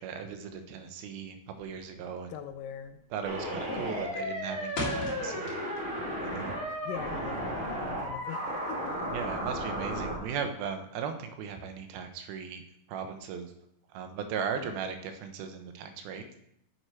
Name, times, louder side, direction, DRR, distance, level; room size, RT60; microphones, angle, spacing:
voice 1, 0.0-2.3 3.1-5.5 6.2-6.5 9.1-12.6 12.9-13.5 13.9-16.4, right 6 dB, 85° right, 7 dB, 2.7 m, -37 dB
sound 1, 1.6-1.9 2.2-2.6 2.9-3.3 3.7-6.0 6.3-7.8, left 3 dB, 45° left, 2.0 m, -38 dB
voice 2, 2.3-3.0 3.5-4.0 6.7-9.4, left 9 dB, 80° left, 8 dB, 2.2 m, -42 dB
sound 2, 3.2-10.2, equal, 40° right, 1.2 m, -34 dB
9.3 x 6.5 x 4.4 m, 0.77 s
omnidirectional pair, 4.3 m